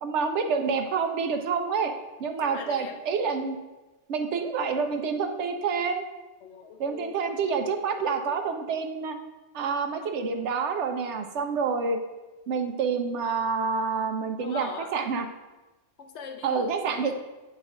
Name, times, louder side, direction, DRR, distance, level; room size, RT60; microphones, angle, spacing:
voice 1, 0.0-1.9 2.2-3.6 4.1-6.0 6.8-9.2 9.5-12.0 12.5-15.3 16.4-17.1, right 5 dB, 90° right, 6 dB, 1.0 m, -28 dB
voice 2, 2.4-3.0 6.4-7.2 11.2-11.4 14.4-14.9 16.0-17.1, left 5 dB, 80° left, 5 dB, 1.0 m, -41 dB
8.7 x 3.3 x 3.6 m, 1.1 s
omnidirectional pair, 1.1 m